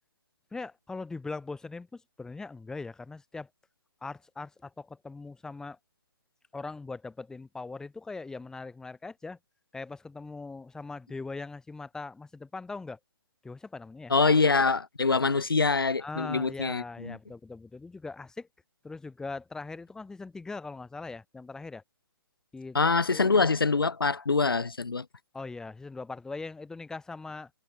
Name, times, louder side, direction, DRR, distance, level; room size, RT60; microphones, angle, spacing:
voice 1, 0.5-3.5 4.0-5.8 6.5-9.4 9.7-13.0 13.4-14.1 16.0-18.5 18.8-21.8 22.5-22.8 23.1-23.5 25.3-27.5, left 3 dB, 5° left, 3.5 m, -40 dB
voice 2, 14.1-17.2 22.7-25.1, left 4 dB, 70° left, 2.8 m, -25 dB
figure-of-eight pair, 130°, 12 cm